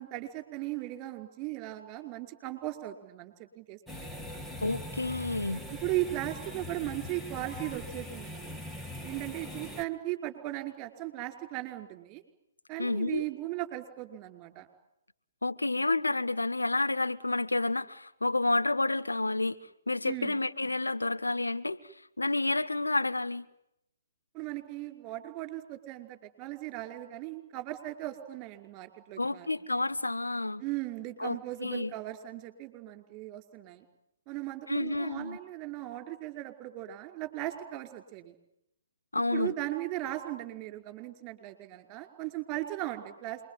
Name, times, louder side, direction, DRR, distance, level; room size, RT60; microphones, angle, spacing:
voice 1, 0.0-4.2 5.7-8.6 9.0-12.2 12.7-14.7 20.0-20.4 24.3-29.5 30.6-33.8 34.3-38.3 39.3-43.4, right 15 dB, 25° right, 5.1 m, -37 dB
sound 1, 3.9-9.8, left 1 dB, 5° left, 1.5 m, -41 dB
voice 2, 4.6-5.6 12.8-13.2 15.4-19.6 19.9-23.5 29.2-30.6 31.2-31.9 34.7-35.4 39.1-39.5, left 2 dB, 90° left, 1.4 m, -30 dB
27.5 x 23.0 x 9.3 m
figure-of-eight pair, 130°, 0 cm